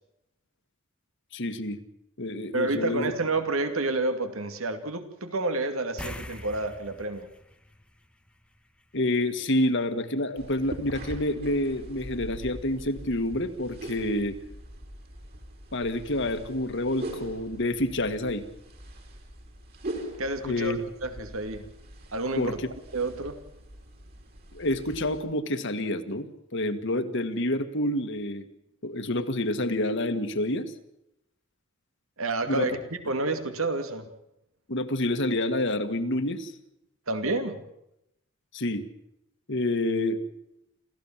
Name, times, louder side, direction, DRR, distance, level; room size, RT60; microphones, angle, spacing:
voice 1, 1.3-1.8 2.2-3.1 8.9-14.4 15.7-18.4 20.4-20.8 22.4-22.6 24.5-28.5 28.8-30.7 32.5-32.7 34.7-36.5 38.5-38.8 39.5-40.2, left 1 dB, 60° left, 9 dB, 1.8 m, -28 dB
voice 2, 2.5-7.3 20.2-20.7 21.0-21.7 22.1-22.6 22.9-23.4 32.2-32.8 33.1-34.0 37.1-37.6, right 2 dB, 80° right, 9 dB, 2.4 m, -29 dB
sound 1, 6.0-8.8 9.1-9.3 12.1-12.2 12.6-12.7, left 1 dB, 5° left, 1.0 m, -43 dB
sound 2, 10.3-25.2, right 1 dB, 50° right, 4.8 m, -42 dB
27.5 x 15.0 x 7.4 m, 0.82 s
head